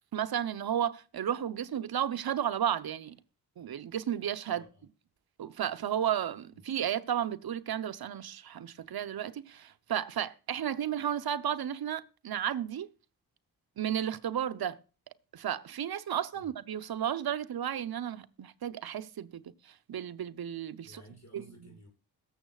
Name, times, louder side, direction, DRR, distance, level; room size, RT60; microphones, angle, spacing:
voice 1, 0.1-3.1 3.6-4.6 5.4-12.9 13.8-14.8 15.3-19.5 19.9-21.0 21.3-21.7, right 9 dB, 60° right, 0.9 m, -33 dB
voice 2, 4.5-4.8 6.5-6.6 16.3-16.5 20.8-21.9, equal, 40° left, 6.1 m, -54 dB
21.5 x 7.3 x 2.4 m
cardioid pair, 50°, 43 cm